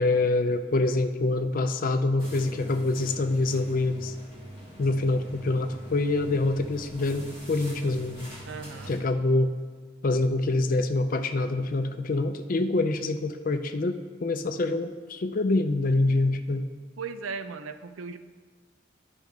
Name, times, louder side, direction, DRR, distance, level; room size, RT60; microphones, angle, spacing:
voice 1, 0.0-4.1 4.8-8.3 8.9-9.5 10.0-16.6, left 2 dB, 45° left, 8 dB, 0.4 m, -26 dB
sound 1, 2.2-9.0, right 1 dB, 25° right, 1.5 m, -44 dB
voice 2, 8.5-9.0 17.0-18.2, right 5 dB, 85° right, 9 dB, 0.5 m, -37 dB
12.0 x 5.2 x 3.5 m, 1.5 s
head